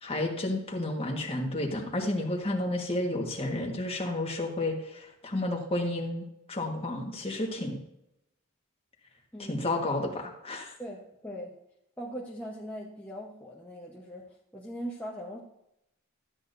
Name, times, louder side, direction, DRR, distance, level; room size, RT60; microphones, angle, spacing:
voice 1, 0.0-7.8 9.4-10.7, left 1 dB, 25° left, 0 dB, 1.5 m, -31 dB
voice 2, 9.3-9.7 10.8-11.5 12.0-14.3 14.5-15.4, equal, 5° left, -4 dB, 1.0 m, -40 dB
13.0 x 8.4 x 2.7 m, 0.83 s
head